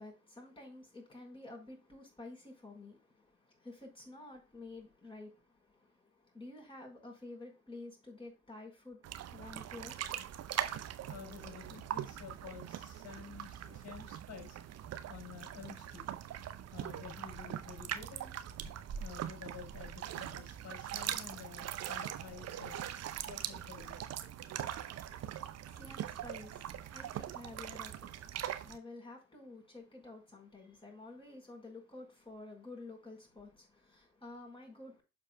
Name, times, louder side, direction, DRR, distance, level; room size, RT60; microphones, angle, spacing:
voice 1, 0.0-10.0 25.2-35.0, left 2 dB, 15° left, 4.6 m, -51 dB
sound 1, 9.0-28.8, right 11 dB, 40° right, 0.7 m, -42 dB
voice 2, 11.1-14.6 15.1-16.1 16.7-18.4 18.9-22.9 23.2-24.0, left 7 dB, 50° left, 4.1 m, -50 dB
12.0 x 4.6 x 2.3 m
figure-of-eight pair, 45°, 38 cm